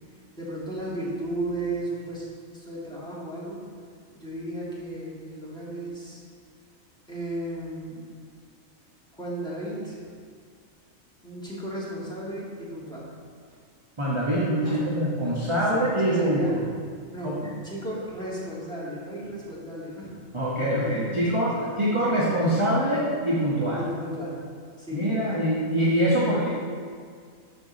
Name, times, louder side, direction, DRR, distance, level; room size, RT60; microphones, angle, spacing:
voice 1, 0.4-2.3 2.5-3.6 4.1-6.2 7.1-8.1 9.1-10.0 11.2-13.1 13.5-13.6 14.6-15.0 15.7-16.6 17.1-20.1 20.8-21.8 23.8-24.4 24.8-25.1, right 1 dB, 5° left, -7 dB, 2.4 m, -34 dB
voice 2, 14.0-16.4 17.2-17.5 20.3-21.5 21.8-23.8 24.9-26.5, equal, 25° right, -6 dB, 1.3 m, -24 dB
13.0 x 5.8 x 4.2 m, 2.1 s
omnidirectional pair, 1.4 m